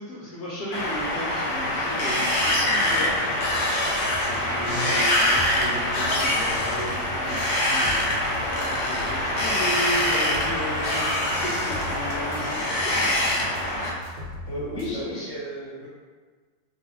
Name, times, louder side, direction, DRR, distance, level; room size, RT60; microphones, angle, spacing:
voice 1, 0.0-3.1 4.3-13.1 14.8-15.3, equal, 70° left, -8 dB, 1.1 m, -35 dB
Wind, 0.7-13.9, left 1 dB, 85° left, 0.6 m, -24 dB
sound 1, 2.4-14.9, left 1 dB, 75° right, 1.2 m, -40 dB
voice 2, 4.7-5.0 13.4-13.7 14.4-15.9, left 1 dB, 50° left, -12 dB, 1.2 m, -33 dB
3.0 x 2.3 x 3.1 m, 1.5 s
omnidirectional pair, 1.9 m